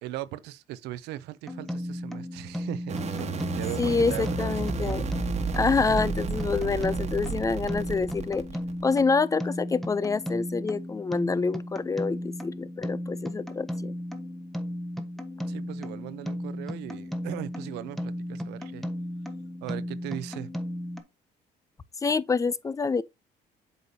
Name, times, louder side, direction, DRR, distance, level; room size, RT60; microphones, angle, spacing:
voice 1, 0.0-4.5 4.8-4.9 15.5-18.9 19.6-20.5, right 15 dB, 90° right, 0.6 m, -38 dB
sound 1, 1.5-21.0, left 1 dB, ahead, 1.0 m, -35 dB
sound 2, 2.9-9.0, right 4 dB, 40° right, 1.2 m, -32 dB
voice 2, 3.8-5.0 5.6-8.4 8.8-13.9 22.0-23.0, left 4 dB, 20° left, 0.4 m, -27 dB
8.1 x 5.1 x 2.7 m
cardioid pair, 110°, 17 cm